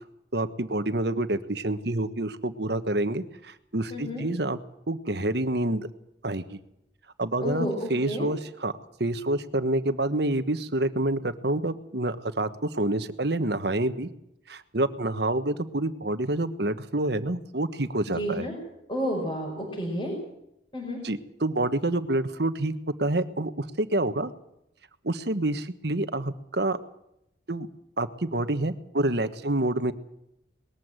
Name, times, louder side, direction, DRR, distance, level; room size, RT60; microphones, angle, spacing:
voice 1, 0.3-4.6 4.9-5.9 6.2-6.6 7.2-8.7 9.0-14.1 14.5-18.5 21.0-22.7 23.0-24.3 25.0-26.8 27.5-27.7 28.0-29.9, right 1 dB, 60° right, 11 dB, 1.4 m, -27 dB
voice 2, 3.9-4.3 7.4-8.3 18.1-18.5 18.9-20.2 20.7-21.0, equal, 25° left, -2 dB, 5.8 m, -30 dB
20.5 x 14.5 x 9.1 m, 0.80 s
head